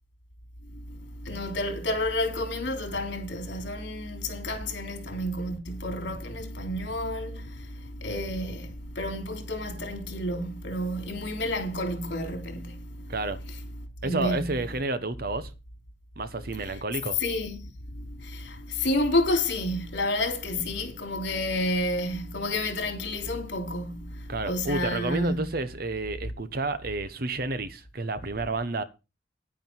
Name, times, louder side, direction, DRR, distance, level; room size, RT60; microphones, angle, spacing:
voice 1, 1.2-7.5 8.0-8.7 8.9-12.8 14.0-14.5 16.6-16.8 17.2-17.6 18.2-24.1 24.5-25.5, left 1 dB, 70° left, 3.2 m, -30 dB
voice 2, 13.1-13.4 14.0-15.5 16.2-17.2 24.3-28.8, right 2 dB, 50° right, 1.0 m, -30 dB
10.0 x 9.5 x 4.6 m
head